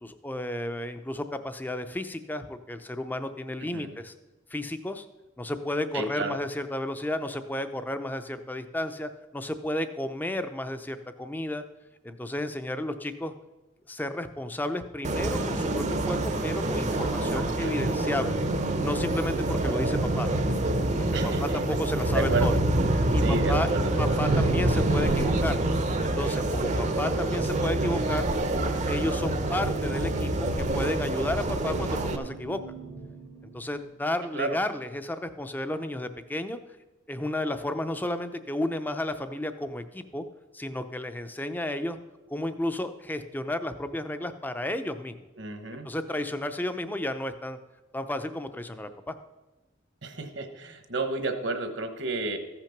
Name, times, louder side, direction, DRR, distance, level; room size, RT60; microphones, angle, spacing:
voice 1, 0.0-4.1 4.5-5.1 5.4-11.6 12.0-13.3 13.9-18.4 18.8-20.3 21.0-21.1 21.4-22.5 23.1-23.7 24.0-25.6 26.0-28.3 28.9-32.6 33.5-36.6 37.1-40.2 40.5-42.0 42.3-45.2 45.7-47.6 47.9-49.1, left 1 dB, 10° left, 9 dB, 0.5 m, -32 dB
voice 2, 3.6-4.0 5.9-6.3 17.3-17.8 21.1-21.9 22.1-22.6 23.2-24.3 34.3-34.6 45.4-45.9 50.0-52.4, right 3 dB, 65° right, 7 dB, 1.1 m, -32 dB
sound 1, 15.0-32.2, right 2 dB, 35° right, 0.7 m, -26 dB
sound 2, 22.1-34.0, right 2 dB, 75° left, 1.8 m, -43 dB
14.5 x 5.9 x 5.9 m, 1.1 s
head